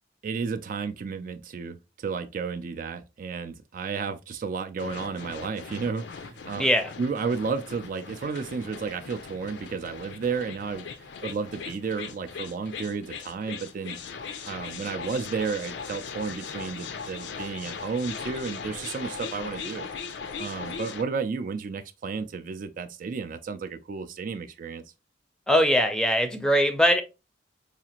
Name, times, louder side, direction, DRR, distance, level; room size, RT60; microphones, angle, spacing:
voice 1, 0.2-6.6 7.0-14.0 14.4-19.9 20.4-24.8, right 5 dB, 50° right, 0.3 m, -32 dB
sound 1, 4.8-21.0, left 5 dB, 70° left, 0.5 m, -39 dB
voice 2, 6.6-6.9 25.5-27.0, equal, 5° left, 0.5 m, -21 dB
4.8 x 2.4 x 2.8 m
head